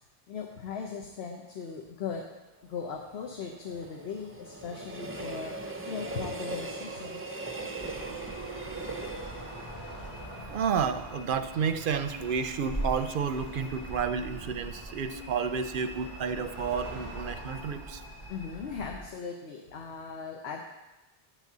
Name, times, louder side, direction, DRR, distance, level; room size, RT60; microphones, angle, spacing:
voice 1, 0.3-2.2 2.6-7.4 18.3-20.6, left 6 dB, 85° left, 1 dB, 1.0 m, -38 dB
Train, 2.6-11.7 12.0-12.1, right 2 dB, 20° right, 0.4 m, -40 dB
sound 1, 4.8-18.6, left 1 dB, 45° left, 2.4 m, -53 dB
sound 2, 7.8-19.1, right 1 dB, 25° left, 2.5 m, -42 dB
voice 2, 10.5-18.0, right 6 dB, 65° right, 10 dB, 0.7 m, -31 dB
9.8 x 4.1 x 7.2 m, 1.1 s
omnidirectional pair, 1.0 m